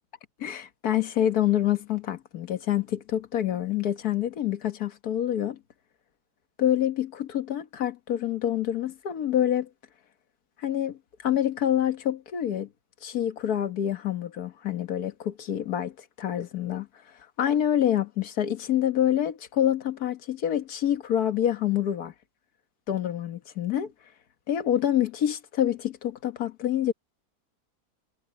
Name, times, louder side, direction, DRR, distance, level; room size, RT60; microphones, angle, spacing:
voice 1, 0.4-5.6 6.6-9.7 10.6-12.7 13.0-16.9 17.4-22.1 22.9-23.9 24.5-26.9, left 11 dB, 70° left, 1.8 m, -27 dB
omnidirectional pair, 1.7 m